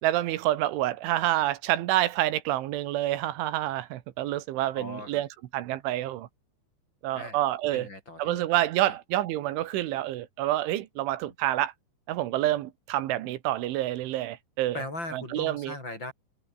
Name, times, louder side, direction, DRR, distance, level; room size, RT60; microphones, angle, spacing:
voice 1, 0.0-5.3 5.5-6.3 7.0-7.9 8.2-11.7 12.1-14.8 15.1-15.8, right 14 dB, 85° right, 3.8 m, -28 dB
voice 2, 4.7-5.2 7.1-7.4 7.7-8.5 8.9-9.0 11.2-11.3 14.7-16.1, left 2 dB, 25° left, 7.5 m, -39 dB
omnidirectional pair, 5.4 m